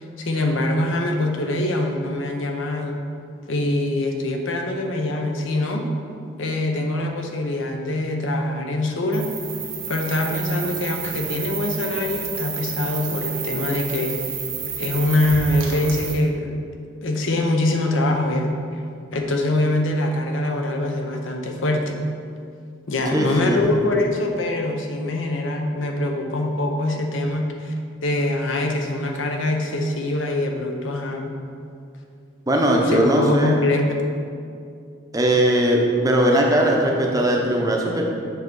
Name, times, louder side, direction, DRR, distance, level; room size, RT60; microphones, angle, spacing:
voice 1, 0.2-3.0 3.5-5.9 6.4-9.3 9.9-14.1 14.8-16.5 17.0-18.5 19.1-22.0 22.9-27.7 28.0-31.3 32.8-34.0, left 1 dB, 75° left, 2 dB, 0.7 m, -23 dB
sound 1, 9.1-16.1, right 7 dB, 80° right, 1.2 m, -31 dB
voice 2, 23.1-23.6 32.5-33.6 35.1-38.0, right 1 dB, 20° right, 0 dB, 0.7 m, -19 dB
7.4 x 3.5 x 5.3 m, 2.4 s
head